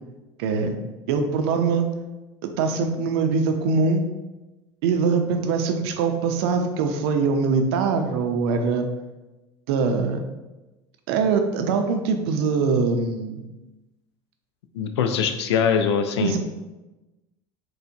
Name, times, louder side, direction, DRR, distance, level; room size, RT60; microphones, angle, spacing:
voice 1, 0.4-0.8 1.1-1.9 2.6-4.1 4.8-8.9 9.7-10.2 11.1-13.5 16.2-16.4, right 5 dB, 70° right, 6 dB, 0.5 m, -22 dB
voice 2, 14.7-16.4, left 7 dB, 80° left, 7 dB, 0.4 m, -22 dB
4.4 x 2.1 x 2.6 m, 1.1 s
hypercardioid pair, 75°, 14 cm